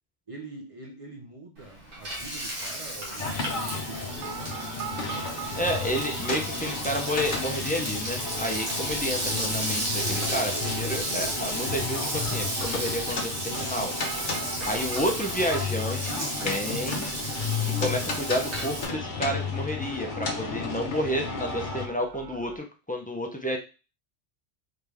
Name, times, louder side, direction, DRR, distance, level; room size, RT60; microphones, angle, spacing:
voice 1, 0.3-4.5 9.2-9.4 15.0-15.2, right 2 dB, 30° right, 2 dB, 0.8 m, -45 dB
Frying (food), 1.6-18.9, right 1 dB, 50° right, 1.4 m, -33 dB
sound 1, 3.2-21.9, left 4 dB, 50° left, 0.8 m, -33 dB
sound 2, 4.1-22.6, right 8 dB, 75° right, 0.9 m, -44 dB
voice 2, 5.6-13.9 14.7-17.1 17.7-23.6, equal, 15° left, 1 dB, 0.3 m, -30 dB
3.8 x 3.4 x 3.4 m, 0.32 s
omnidirectional pair, 1.2 m